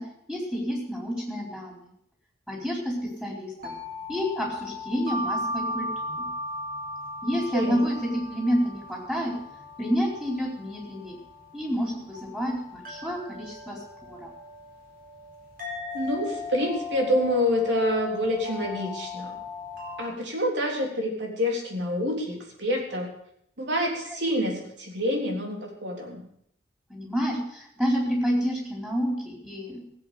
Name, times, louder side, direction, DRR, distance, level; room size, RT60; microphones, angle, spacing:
voice 1, 0.3-1.8 2.5-3.5 4.1-6.1 7.2-9.3 9.8-11.2 11.5-14.3 26.9-29.9, equal, 5° right, -2 dB, 4.2 m, -29 dB
sound 1, 3.6-20.1, left 2 dB, 45° right, 4.1 m, -37 dB
voice 2, 7.5-7.9 15.9-19.4 20.0-23.1 23.6-26.2, left 1 dB, 65° right, 0 dB, 3.6 m, -27 dB
16.5 x 8.2 x 6.9 m, 0.70 s
head